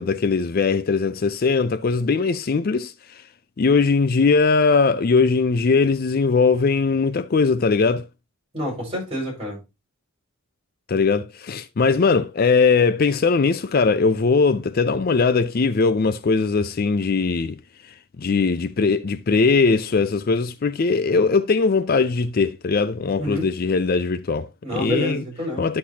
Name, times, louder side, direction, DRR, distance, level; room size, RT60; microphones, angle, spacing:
voice 1, 0.0-3.2 3.6-8.1 10.9-17.6 17.9-25.2 25.6-25.8, left 4 dB, 40° left, 0.4 m, -20 dB
voice 2, 8.5-9.6 23.2-23.5 24.6-25.6, equal, 25° right, 5.7 m, -28 dB
11.5 x 6.6 x 2.8 m
head